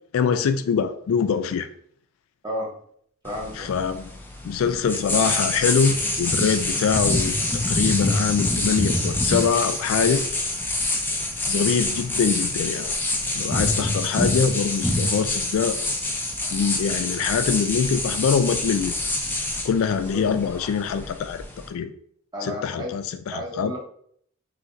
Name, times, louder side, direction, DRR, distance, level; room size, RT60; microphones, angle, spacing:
voice 1, 0.1-1.7 3.6-4.1 4.4-10.2 11.4-13.0 13.3-15.8 16.5-19.0 19.6-21.4 21.7-21.9 22.5-23.7, left 6 dB, 70° left, 11 dB, 0.3 m, -24 dB
voice 2, 3.2-3.7 20.1-20.4 22.3-22.9 23.3-23.8, equal, 20° right, -3 dB, 1.1 m, -32 dB
sound 1, 3.3-21.7, left 2 dB, 10° left, 0.5 m, -26 dB
5.6 x 3.0 x 2.6 m, 0.64 s
head